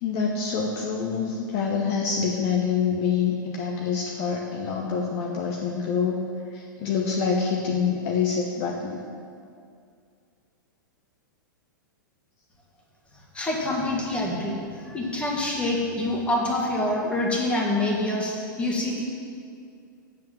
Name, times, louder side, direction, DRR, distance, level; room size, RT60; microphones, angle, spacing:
voice 1, 0.0-6.3 6.5-9.0, left 6 dB, 40° left, 0 dB, 0.9 m, -26 dB
voice 2, 13.3-19.0, left 1 dB, 10° left, -2 dB, 1.8 m, -26 dB
7.6 x 6.6 x 7.6 m, 2.3 s
figure-of-eight pair, 100°, 11 cm